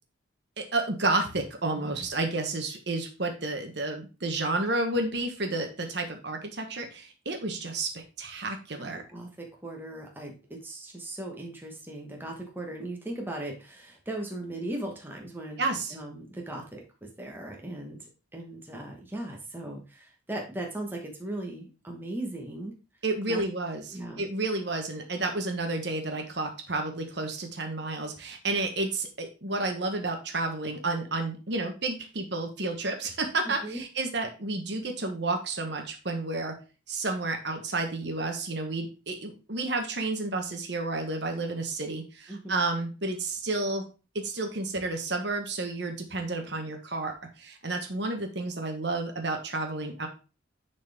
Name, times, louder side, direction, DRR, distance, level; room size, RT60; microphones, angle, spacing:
voice 1, 0.6-9.1 15.6-15.9 23.0-36.5 36.9-43.8 44.1-50.1, right 2 dB, 55° right, 4 dB, 1.3 m, -31 dB
voice 2, 1.7-2.1 8.7-22.8 23.3-23.4 23.9-24.3 33.4-33.8 42.3-42.6, right 1 dB, 10° right, 0 dB, 1.3 m, -38 dB
10.5 x 4.3 x 3.5 m, 0.32 s
head